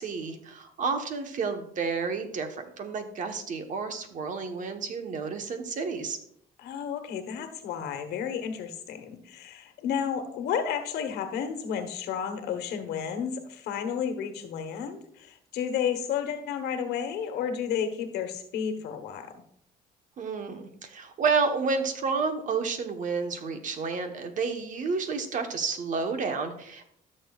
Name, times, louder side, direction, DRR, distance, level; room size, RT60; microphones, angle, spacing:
voice 1, 0.0-6.2 20.2-26.9, right 4 dB, 50° right, 7 dB, 1.2 m, -30 dB
voice 2, 6.6-19.3, left 7 dB, 80° left, 7 dB, 1.2 m, -32 dB
14.5 x 6.5 x 2.4 m, 0.70 s
cardioid pair, 110°, 17 cm